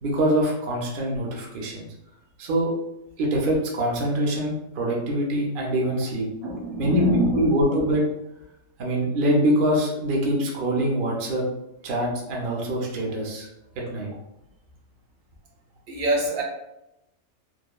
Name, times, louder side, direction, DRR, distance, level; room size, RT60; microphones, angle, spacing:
voice 1, 0.0-1.9 2.4-2.7 3.2-6.3 6.8-7.0 7.3-8.0 8.8-11.5 11.8-13.5 13.8-14.1, right 1 dB, 55° right, -2 dB, 0.6 m, -24 dB
voice 2, 6.4-7.6 15.9-16.4, equal, 75° right, -2 dB, 1.2 m, -24 dB
3.0 x 2.2 x 2.2 m, 0.88 s
omnidirectional pair, 1.5 m